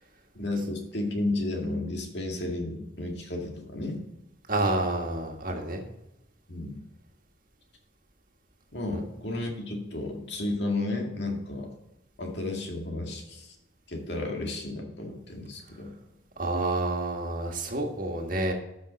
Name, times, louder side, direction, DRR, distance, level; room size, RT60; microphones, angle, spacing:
voice 1, 0.3-4.0 6.5-6.8 8.7-11.7 12.2-13.5 13.9-16.0, left 2 dB, 60° left, 1 dB, 2.1 m, -32 dB
voice 2, 4.5-5.8 8.9-9.0 16.4-18.5, right 2 dB, 45° right, 2 dB, 1.6 m, -29 dB
12.5 x 5.7 x 4.1 m, 0.91 s
head